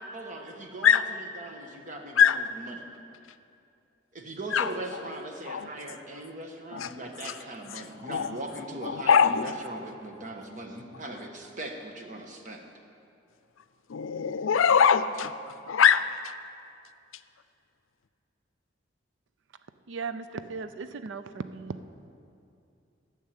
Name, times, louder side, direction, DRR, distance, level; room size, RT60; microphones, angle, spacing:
voice 1, 0.1-2.9 4.1-12.6, right 1 dB, 40° right, 3 dB, 1.2 m, -40 dB
voice 2, 8.8-9.5 13.9-15.3 15.7-16.3, left 7 dB, 90° left, 13 dB, 0.5 m, -22 dB
voice 3, 19.9-21.8, right 4 dB, 65° right, 11 dB, 0.4 m, -37 dB
12.0 x 6.5 x 8.9 m, 2.6 s
head